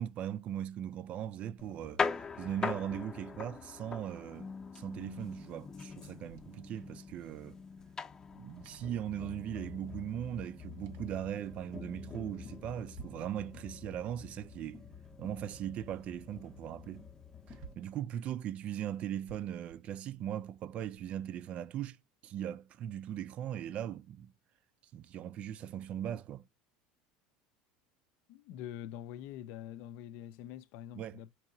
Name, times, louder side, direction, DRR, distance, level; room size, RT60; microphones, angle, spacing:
voice 1, 0.0-2.0 2.4-7.6 8.4-14.8 15.2-17.1 17.8-22.0 22.2-24.3 24.9-26.4 30.9-31.2, right 10 dB, 45° right, 0.3 m, -39 dB
sound 1, 1.6-17.7, left 5 dB, 20° left, 0.6 m, -43 dB
sound 2, 6.2-9.6 9.9-10.0 10.3-11.6 12.1-13.4 13.7-16.3 16.6-16.7 17.0-18.1 18.7-21.2, right 5 dB, 75° right, 0.9 m, -59 dB
voice 2, 28.3-31.3, left 11 dB, 65° left, 0.5 m, -45 dB
4.6 x 2.8 x 2.6 m
supercardioid pair, 130°, 3 cm